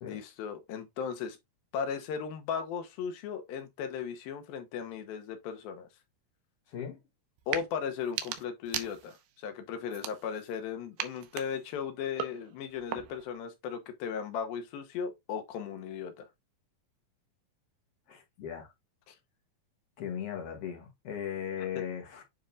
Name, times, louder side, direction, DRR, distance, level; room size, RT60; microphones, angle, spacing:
voice 1, 0.0-1.4 1.7-5.9 7.5-16.3 19.1-19.2 21.6-21.7, left 7 dB, 80° left, 2.8 m, -37 dB
voice 2, 6.7-7.0 18.1-18.7 20.0-22.2, left 9 dB, 50° left, 2.2 m, -38 dB
sound 1, 7.4-7.7 8.0-9.3 9.9-10.6 11.0-13.3, right 11 dB, 85° right, 2.7 m, -39 dB
9.5 x 3.7 x 2.7 m
omnidirectional pair, 4.2 m